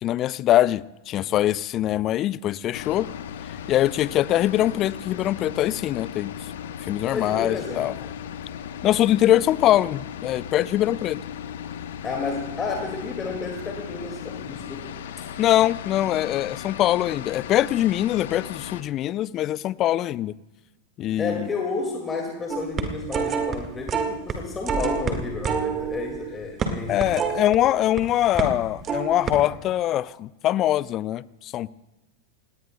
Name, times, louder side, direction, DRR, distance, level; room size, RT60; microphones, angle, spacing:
voice 1, 0.0-3.1 3.7-6.3 6.9-7.9 8.8-11.2 15.4-20.3 21.0-21.5 26.9-31.7, left 13 dB, 35° left, 0.4 m, -23 dB
sound 1, 2.7-18.8, left 9 dB, 55° left, 1.0 m, -37 dB
voice 2, 7.1-7.9 12.0-14.9 21.2-27.2, left 4 dB, 20° left, 2.2 m, -31 dB
sound 2, 22.5-23.6 23.9-24.4 24.7-28.0 28.4-28.6 28.8-29.3, right 6 dB, 25° right, 1.7 m, -27 dB
29.5 x 18.0 x 2.2 m
figure-of-eight pair, 90°, 0 cm